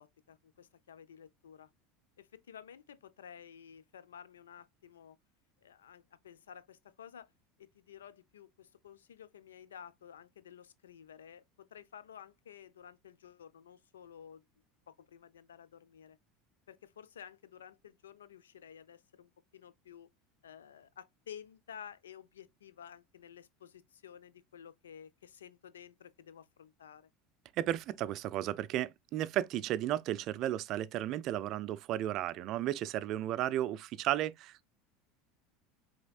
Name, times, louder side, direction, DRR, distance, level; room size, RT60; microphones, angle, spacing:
voice 1, 0.0-1.7 2.2-5.2 5.6-7.3 7.6-14.4 14.9-16.2 16.7-20.1 20.4-27.1, left 8 dB, 90° left, 0.5 m, -53 dB
voice 2, 27.6-34.7, right 13 dB, 55° right, 0.4 m, -34 dB
5.1 x 3.5 x 2.3 m
hypercardioid pair, 85°, 0 cm